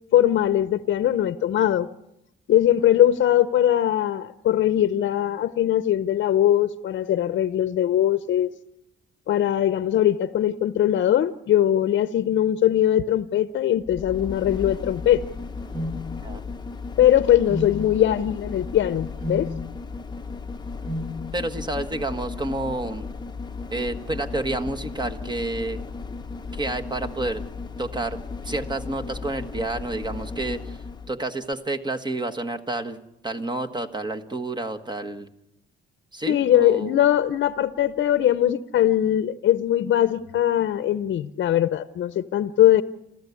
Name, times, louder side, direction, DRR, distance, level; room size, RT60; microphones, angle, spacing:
voice 1, 0.1-1.9 2.5-8.5 9.3-15.2 17.0-19.5 36.3-42.8, left 11 dB, 65° left, 13 dB, 0.8 m, -21 dB
sound 1, 13.8-31.1 31.5-31.6, left 4 dB, 20° left, 0.9 m, -35 dB
sound 2, 15.7-16.0 17.5-17.8 19.2-19.5 20.8-21.1, equal, 50° right, 2.9 m, -30 dB
voice 2, 21.3-23.1 23.7-25.8 26.5-27.4 27.8-30.8 31.1-33.0 33.2-35.3 36.1-37.0, right 2 dB, 20° right, 6 dB, 1.5 m, -29 dB
28.5 x 14.0 x 8.4 m, 0.86 s
cardioid pair, 90°, 20 cm